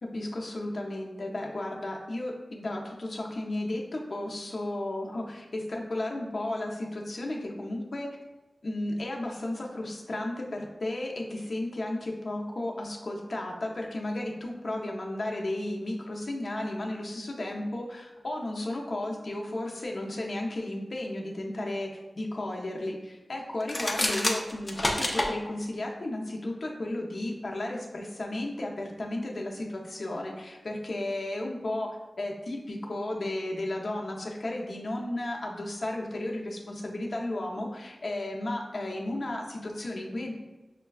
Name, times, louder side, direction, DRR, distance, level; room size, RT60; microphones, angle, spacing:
voice 1, 0.0-8.1 8.6-40.3, left 1 dB, 60° left, -1 dB, 0.7 m, -34 dB
sound 1, 23.6-25.3, left 1 dB, 25° left, 0.5 m, -28 dB
6.5 x 2.2 x 2.3 m, 1.1 s
wide cardioid pair, 85°, 0 cm